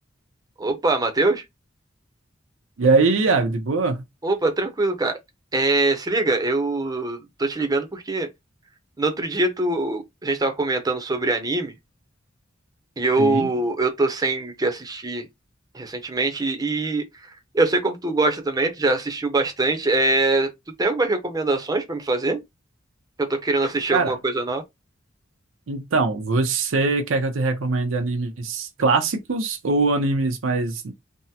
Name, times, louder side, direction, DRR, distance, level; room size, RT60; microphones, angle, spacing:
voice 1, 0.6-1.4 4.2-5.2 5.5-8.3 9.0-11.7 13.0-15.3 15.7-17.0 17.5-20.5 20.8-22.4 23.2-24.6, right 2 dB, 20° right, 0.6 m, -23 dB
voice 2, 2.8-4.0 13.2-13.5 23.9-24.1 25.7-30.9, right 3 dB, 90° right, 0.6 m, -22 dB
3.5 x 2.0 x 2.7 m
head